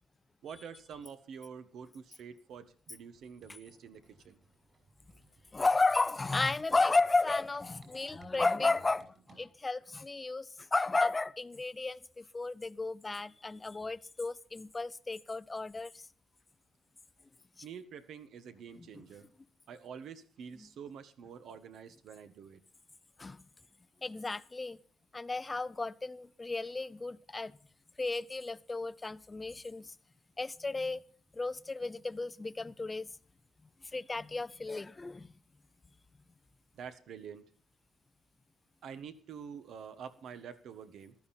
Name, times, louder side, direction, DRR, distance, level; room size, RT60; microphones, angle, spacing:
voice 1, 0.4-4.4 17.6-19.3 19.7-22.6 36.7-37.5 38.8-41.1, right 7 dB, 70° right, 1.5 m, -47 dB
sound 1, 3.1-9.5, right 4 dB, 45° right, 6.2 m, -61 dB
voice 2, 5.5-16.1 18.8-19.0 20.5-20.7 23.2-23.4 24.0-24.8 25.1-27.5 28.0-29.9 30.4-31.0 31.3-33.1 33.9-35.3, left 3 dB, 20° left, 0.5 m, -33 dB
15.0 x 13.5 x 4.3 m
cardioid pair, 120°, 0 cm